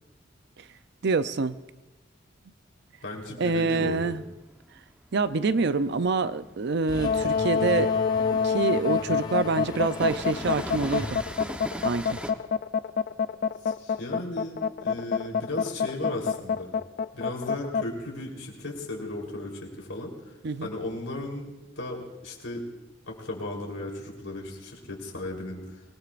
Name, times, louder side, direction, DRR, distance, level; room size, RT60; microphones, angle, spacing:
voice 1, 1.0-1.6 3.4-4.2 5.1-7.9 8.4-11.2 11.8-12.2 20.4-20.7, right 4 dB, 60° right, 13 dB, 0.6 m, -26 dB
voice 2, 3.0-4.2 13.6-16.7 17.1-20.3 20.6-21.5 21.8-22.6 23.1-25.8, left 1 dB, 85° left, 0 dB, 3.8 m, -36 dB
Train, 3.3-12.3, right 1 dB, 5° right, 1.0 m, -41 dB
sound 1, 6.9-12.2, left 2 dB, 20° left, 0.8 m, -40 dB
sound 2, 7.0-17.9, left 6 dB, 50° left, 0.4 m, -26 dB
25.5 x 19.0 x 2.5 m, 1.1 s
head